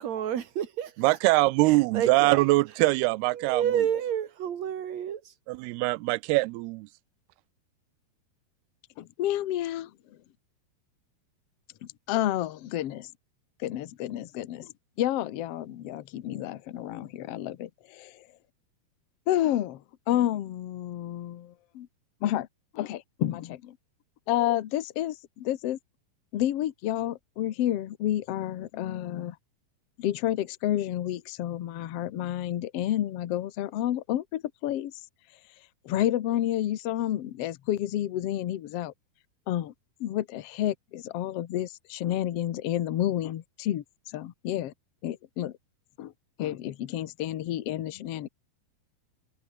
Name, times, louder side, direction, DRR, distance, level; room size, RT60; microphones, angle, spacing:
voice 1, 0.0-2.5 3.3-5.3, right 9 dB, 50° right, 3.0 m, -30 dB
voice 2, 1.0-3.6 5.5-6.9, right 22 dB, 85° right, 2.5 m, -23 dB
voice 3, 9.0-9.9 11.8-13.1 13.6-14.7 15.0-18.3 19.3-21.9 22.2-22.5 22.7-23.8 24.3-25.8 26.3-29.4 30.0-34.9 35.8-38.9 39.5-39.7 40.0-44.7 45.0-45.5 46.0-46.1 46.4-48.3, left 12 dB, 85° left, 1.3 m, -30 dB
omnidirectional pair, 4.5 m